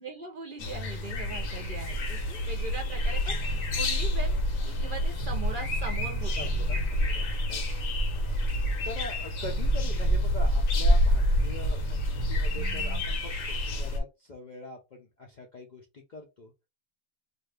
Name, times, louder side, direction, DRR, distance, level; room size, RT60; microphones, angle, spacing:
voice 1, 0.0-4.4 4.6-6.3, right 3 dB, 50° right, 0.7 m, -40 dB
sound 1, 0.6-14.0, equal, 85° left, 1.2 m, -27 dB
sound 2, 3.3-3.8 4.9-5.0 5.2-6.9 9.0-9.1 9.4-10.6 11.4-13.0, right 5 dB, 30° right, 1.1 m, -40 dB
voice 2, 6.4-7.6 8.8-16.5, left 3 dB, 50° left, 0.5 m, -43 dB
2.6 x 2.4 x 3.3 m
omnidirectional pair, 1.4 m